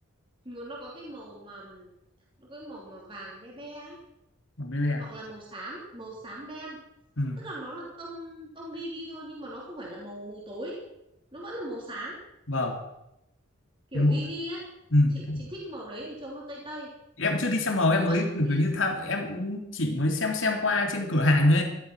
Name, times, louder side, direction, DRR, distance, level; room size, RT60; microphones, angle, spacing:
voice 1, 0.4-1.9 2.4-4.0 5.0-6.8 7.4-10.8 11.3-12.2 13.9-14.6 15.1-16.9 17.9-18.2 18.5-18.6, right 1 dB, 25° right, -3 dB, 3.3 m, -39 dB
voice 2, 4.6-5.0 7.2-7.4 12.5-12.8 13.9-14.1 14.9-15.4 17.2-21.6, left 2 dB, 65° left, 3 dB, 3.2 m, -25 dB
15.5 x 12.5 x 6.2 m, 0.87 s
head